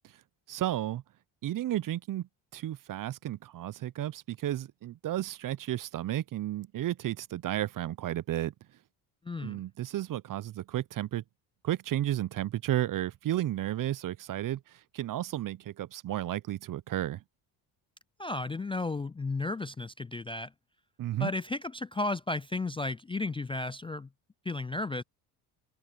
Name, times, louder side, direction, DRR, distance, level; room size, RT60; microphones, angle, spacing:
voice 1, 0.5-1.0 1.4-2.3 2.5-8.5 9.4-11.2 11.6-14.6 14.9-17.2 21.0-21.3, right 13 dB, 45° right, 0.7 m, -32 dB
voice 2, 9.3-9.6 18.2-20.5 21.2-24.1 24.5-25.0, left 2 dB, 10° left, 0.4 m, -33 dB
supercardioid pair, 70°, 47 cm